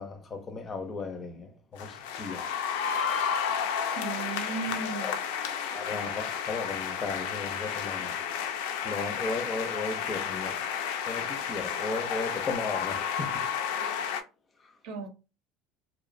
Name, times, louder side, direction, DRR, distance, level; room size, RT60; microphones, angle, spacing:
voice 1, 0.0-2.5 5.0-5.1 5.7-8.2 8.8-10.6 11.0-13.5, left 3 dB, 25° left, 0.4 m, -36 dB
sound 1, 1.8-14.2, left 7 dB, 85° left, 0.4 m, -32 dB
voice 2, 3.9-5.1 14.8-15.1, right 5 dB, 75° right, 0.7 m, -35 dB
2.6 x 2.0 x 2.4 m
cardioid pair, 150°, 0 cm